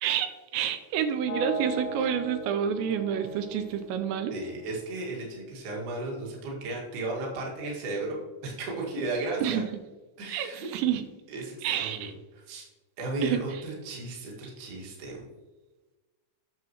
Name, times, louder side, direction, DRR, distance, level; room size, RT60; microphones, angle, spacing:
voice 1, 0.0-4.3 9.4-9.6 10.3-11.0 11.6-12.1 13.2-13.6, right 8 dB, 80° right, 9 dB, 2.6 m, -29 dB
sound 1, 1.3-5.2, right 2 dB, 55° left, 1.8 m, -38 dB
voice 2, 4.3-9.6 10.2-10.7 11.3-12.1 12.5-12.7 13.0-15.2, right 2 dB, 60° right, -3 dB, 3.5 m, -34 dB
9.5 x 6.8 x 3.0 m, 1.1 s
omnidirectional pair, 5.5 m